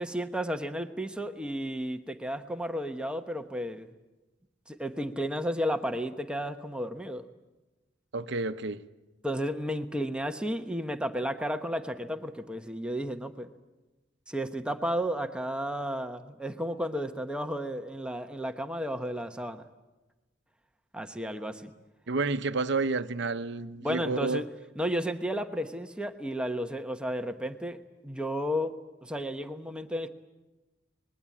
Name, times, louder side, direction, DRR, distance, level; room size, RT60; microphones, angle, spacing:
voice 1, 0.0-3.9 4.7-7.3 9.2-13.5 14.3-19.7 20.9-21.7 23.8-24.4 24.8-28.7 29.0-30.1, equal, 5° right, 1.1 m, -33 dB
voice 2, 8.1-8.8 22.1-24.4, right 3 dB, 65° right, 0.9 m, -30 dB
24.5 x 21.0 x 8.5 m
head